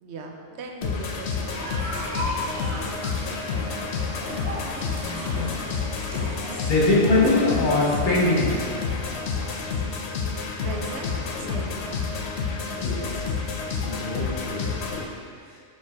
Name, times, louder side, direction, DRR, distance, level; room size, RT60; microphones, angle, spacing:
voice 1, 0.0-1.8 10.0-10.1 10.6-12.2 12.7-13.5, right 3 dB, 80° right, 2 dB, 1.0 m, -38 dB
sound 1, 0.8-15.0, left 5 dB, 75° left, 0.9 m, -29 dB
sound 2, 1.4-9.7, equal, 65° right, 1.6 m, -35 dB
voice 2, 2.7-4.0 5.0-5.7 6.5-8.7 12.8-13.1 13.7-15.0, left 2 dB, 50° left, -5 dB, 1.3 m, -25 dB
7.2 x 3.2 x 4.6 m, 2.1 s
omnidirectional pair, 1.1 m